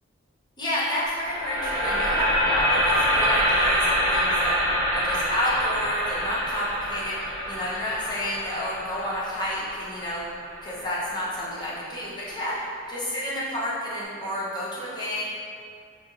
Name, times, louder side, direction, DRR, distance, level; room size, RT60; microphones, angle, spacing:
voice 1, 0.6-4.6 4.9-7.2 7.5-10.3 10.6-15.2, left 1 dB, 20° left, -9 dB, 0.9 m, -30 dB
sound 1, 1.1-11.2, equal, 30° right, 0.9 m, -25 dB
5.3 x 2.7 x 2.6 m, 2.2 s
head